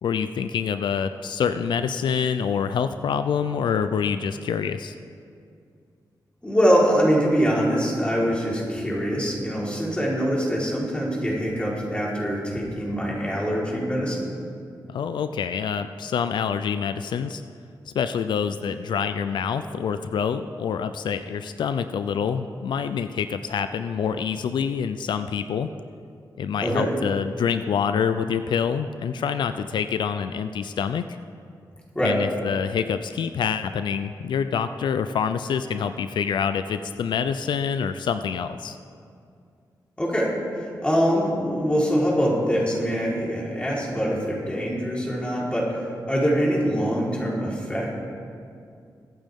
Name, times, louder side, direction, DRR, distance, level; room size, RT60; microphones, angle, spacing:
voice 1, 0.0-5.0 14.9-17.4 17.9-25.7 26.4-31.2 32.0-38.8, left 7 dB, 90° left, 10 dB, 0.4 m, -26 dB
voice 2, 6.4-14.2 26.6-26.9 31.9-32.2 40.0-47.9, equal, 15° left, -5 dB, 4.0 m, -24 dB
22.5 x 9.1 x 3.6 m, 2.4 s
cardioid pair, 75°, 8 cm